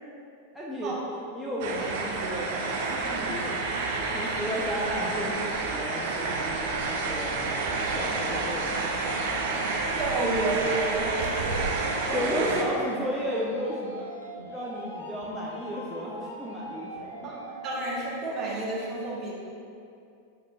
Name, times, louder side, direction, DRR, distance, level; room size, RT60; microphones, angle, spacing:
voice 1, 0.5-3.6 4.1-7.4 7.9-8.8 9.5-9.6 12.1-14.1 14.5-17.3, equal, ahead, -7 dB, 0.5 m, -33 dB
sound 1, 1.6-12.6, right 3 dB, 55° right, 0.5 m, -29 dB
sound 2, 2.2-18.2, equal, 80° left, 0.5 m, -44 dB
voice 2, 10.0-12.4 17.2-19.3, right 2 dB, 35° right, -5 dB, 1.0 m, -31 dB
6.0 x 3.6 x 2.3 m, 2.5 s
figure-of-eight pair, 90°, 0 cm